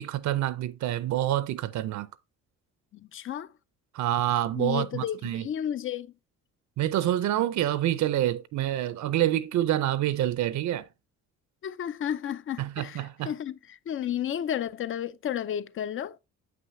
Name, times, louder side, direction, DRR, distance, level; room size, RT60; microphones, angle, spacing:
voice 1, 0.0-2.1 3.9-5.5 6.8-10.9 12.6-13.3, right 13 dB, 70° right, 0.5 m, -27 dB
voice 2, 3.1-3.5 4.5-6.1 11.6-16.2, left 10 dB, 45° left, 0.4 m, -32 dB
7.6 x 5.9 x 2.6 m
cardioid pair, 90°, 30 cm